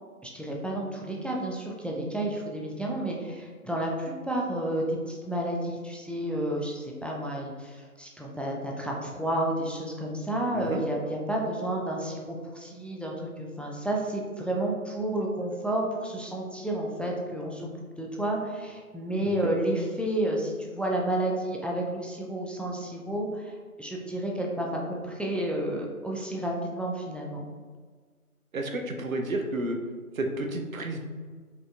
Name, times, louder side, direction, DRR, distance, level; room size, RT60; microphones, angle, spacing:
voice 1, 0.2-17.7 18.0-27.5, right 1 dB, 5° left, -1 dB, 0.3 m, -31 dB
voice 2, 28.5-29.8 30.1-31.0, right 2 dB, 65° right, 4 dB, 0.6 m, -31 dB
5.0 x 2.4 x 2.3 m, 1.5 s
figure-of-eight pair, 175°, 44 cm